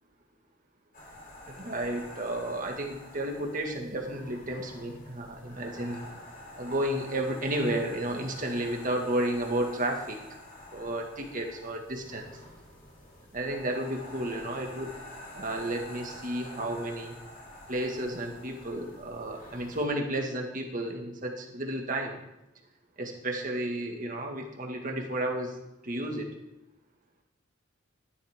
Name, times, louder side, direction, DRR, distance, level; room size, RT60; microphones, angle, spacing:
sound 1, 0.9-19.8, left 1 dB, 45° left, 3.4 m, -47 dB
voice 1, 1.5-6.1 6.5-10.2 10.7-12.3 13.3-14.9 15.3-17.1 17.7-22.2 23.0-25.6 25.8-26.3, right 1 dB, 40° right, 2 dB, 1.8 m, -32 dB
13.0 x 11.5 x 3.7 m, 0.89 s
head